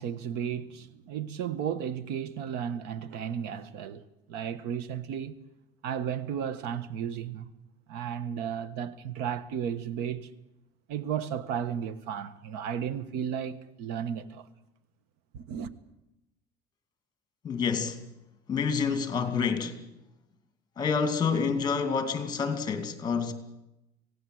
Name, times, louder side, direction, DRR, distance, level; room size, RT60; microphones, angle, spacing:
voice 1, 0.0-4.0 4.3-5.3 5.8-7.5 7.9-10.3 10.9-14.5 15.3-15.7, right 8 dB, 80° right, 1.4 m, -34 dB
voice 2, 17.4-18.0 18.5-19.8 20.8-23.3, left 5 dB, 25° left, 2.5 m, -28 dB
26.0 x 17.5 x 7.9 m
cardioid pair, 160°, 17 cm